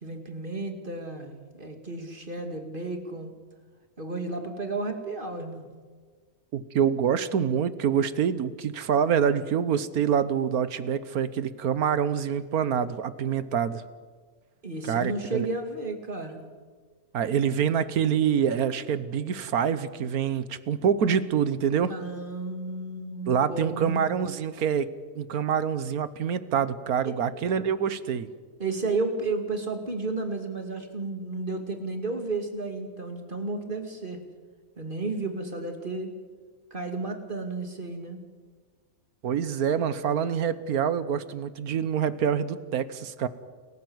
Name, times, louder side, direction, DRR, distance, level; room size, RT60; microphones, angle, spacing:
voice 1, 0.0-3.3 4.0-5.7 14.6-16.4 21.9-24.1 28.6-34.2 34.8-36.1 36.7-38.2, right 3 dB, 35° right, 5 dB, 2.5 m, -32 dB
voice 2, 6.5-13.8 14.8-15.5 17.1-21.9 23.3-24.9 25.1-28.3 39.2-43.3, right 8 dB, 75° right, 15 dB, 1.5 m, -26 dB
29.0 x 15.0 x 8.0 m, 1.5 s
omnidirectional pair, 1.6 m